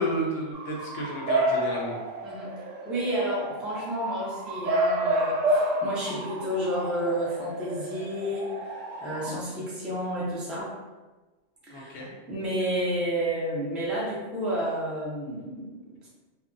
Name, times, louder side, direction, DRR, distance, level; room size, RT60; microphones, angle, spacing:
voice 1, 0.0-2.0 11.7-12.1, equal, 60° left, -2 dB, 0.8 m, -31 dB
Bark / Motor vehicle (road) / Siren, 0.5-9.3, right 1 dB, 85° right, 0.9 m, -30 dB
voice 2, 2.2-10.7 11.7-12.0 12.3-16.1, equal, ahead, -7 dB, 0.4 m, -31 dB
2.3 x 2.1 x 3.7 m, 1.2 s
omnidirectional pair, 1.3 m